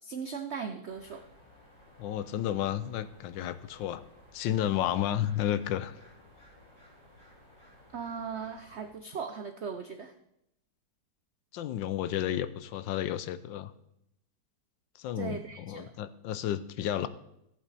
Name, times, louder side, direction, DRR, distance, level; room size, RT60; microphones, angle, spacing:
voice 1, 0.0-1.3 7.9-10.1 15.2-15.9, right 6 dB, 80° right, 7 dB, 0.6 m, -38 dB
sound 1, 0.9-8.9, left 1 dB, 65° left, 5.6 m, -57 dB
voice 2, 2.0-4.0 4.3-6.0 11.5-13.7 15.0-17.1, left 11 dB, 85° left, 14 dB, 1.3 m, -32 dB
14.0 x 8.2 x 4.1 m, 0.82 s
omnidirectional pair, 2.0 m